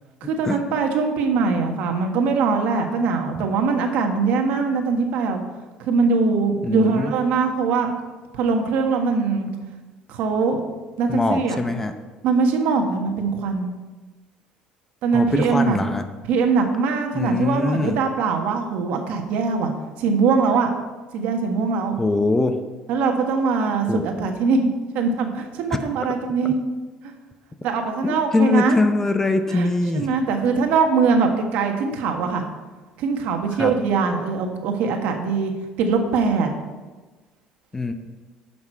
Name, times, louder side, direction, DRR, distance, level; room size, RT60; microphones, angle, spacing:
voice 1, 0.2-5.4 5.8-7.9 8.3-9.5 10.1-10.6 11.0-11.6 12.2-13.7 15.0-15.8 16.3-19.7 20.0-20.7 21.1-22.0 22.9-24.7 24.9-26.6 27.0-27.1 27.6-28.8 29.5-29.7 29.9-32.4 33.0-35.5 35.8-36.5, right 4 dB, 75° right, 4 dB, 1.4 m, -22 dB
voice 2, 6.6-7.1 11.1-11.9 15.1-16.0 17.1-18.0 22.0-22.6 23.9-24.1 28.0-30.1 33.6-33.7 37.7-37.9, left 3 dB, 15° left, 8 dB, 0.6 m, -22 dB
11.0 x 6.1 x 4.5 m, 1.2 s
cardioid pair, 130°, 3 cm